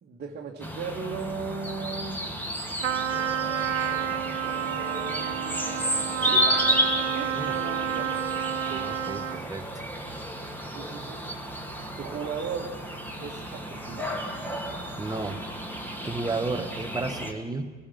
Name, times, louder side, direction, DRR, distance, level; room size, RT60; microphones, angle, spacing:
voice 1, 0.0-2.3 3.9-6.5 7.1-8.2 8.6-8.9 10.7-11.3 12.0-12.8 13.2-14.1, right 5 dB, 30° right, -1 dB, 2.0 m, -37 dB
sound 1, 0.6-17.3, equal, 5° left, 2.5 m, -32 dB
Trumpet, 2.8-9.5, right 9 dB, 85° right, 0.5 m, -30 dB
voice 2, 8.7-9.6 15.0-15.4 16.0-17.7, right 3 dB, 10° right, 9 dB, 1.4 m, -32 dB
24.5 x 18.0 x 5.9 m, 1.5 s
figure-of-eight pair, 70°, 35 cm